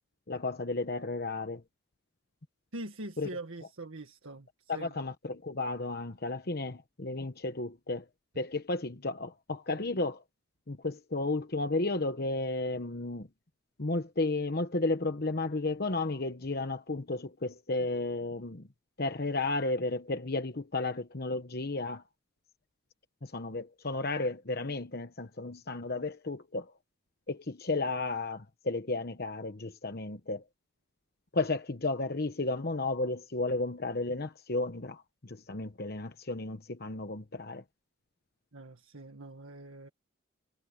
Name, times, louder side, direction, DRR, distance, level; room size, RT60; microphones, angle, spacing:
voice 1, 0.3-1.6 3.2-3.3 4.7-8.0 8.4-10.2 10.7-13.3 13.8-18.7 19.0-22.0 23.2-26.7 27.3-30.4 31.3-37.6, left 2 dB, 50° left, 1.1 m, -33 dB
voice 2, 2.7-4.9 38.5-39.9, right 2 dB, 80° right, 1.8 m, -43 dB
head